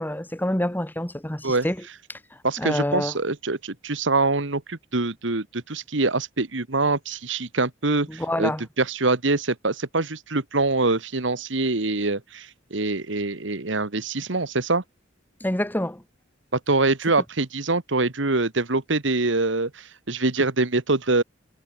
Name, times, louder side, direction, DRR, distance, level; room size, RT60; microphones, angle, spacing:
voice 1, 0.0-1.8 2.1-2.2 2.6-3.1 8.1-8.6 15.4-16.0, left 1 dB, 10° left, 1.5 m, -27 dB
voice 2, 2.4-8.5 8.8-14.8 16.5-21.2, right 3 dB, 70° right, 1.6 m, -24 dB
head